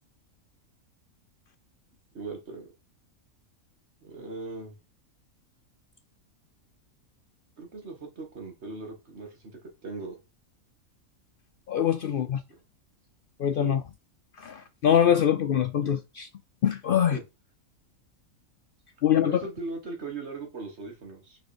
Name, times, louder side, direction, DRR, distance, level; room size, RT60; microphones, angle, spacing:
voice 1, 2.1-2.7 4.0-4.7 7.6-9.4 9.8-10.2 12.0-12.1 13.6-13.8 15.8-15.9 17.1-17.2 19.2-21.4, right 3 dB, 50° right, 2.0 m, -38 dB
voice 2, 11.7-12.4 13.4-13.8 14.4-16.3 16.6-17.2 19.0-19.4, left 9 dB, 90° left, 0.4 m, -24 dB
5.6 x 4.2 x 4.3 m
omnidirectional pair, 1.5 m